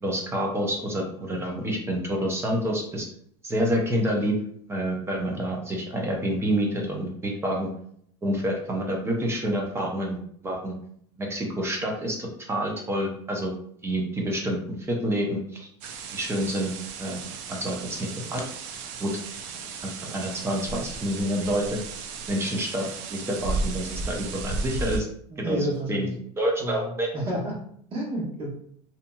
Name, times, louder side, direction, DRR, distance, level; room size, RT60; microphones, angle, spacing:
voice 1, 0.0-3.1 3.4-4.3 4.7-7.7 8.2-10.7 11.2-13.5 13.8-14.6 14.9-15.7 16.1-16.7 17.0-18.4 19.0-19.1 19.8-21.8 22.3-22.9 23.1-25.1 25.4-26.1 26.4-27.1, equal, 15° right, 0 dB, 0.6 m, -28 dB
sound 1, 15.8-25.0, right 4 dB, 60° right, 0.4 m, -34 dB
voice 2, 25.3-26.2 26.6-27.5 27.9-28.5, equal, 40° right, -3 dB, 1.2 m, -30 dB
2.8 x 2.6 x 2.2 m, 0.64 s
supercardioid pair, 130°, 15 cm